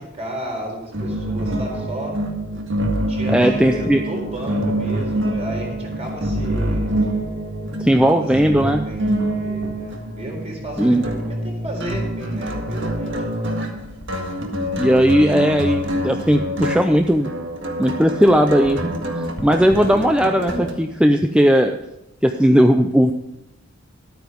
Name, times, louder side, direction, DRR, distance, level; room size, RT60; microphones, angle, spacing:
voice 1, 0.0-2.2 3.1-6.9 8.2-11.1 11.4-13.1, right 1 dB, 35° right, -1 dB, 4.1 m, -33 dB
sound 1, 0.9-20.7, right 1 dB, 65° right, 1.8 m, -26 dB
voice 2, 3.3-4.0 7.8-8.8 10.8-11.0 14.8-17.3 17.8-19.0 19.4-21.8 22.2-23.1, equal, 5° right, 5 dB, 0.5 m, -17 dB
13.0 x 9.2 x 5.2 m, 0.86 s
head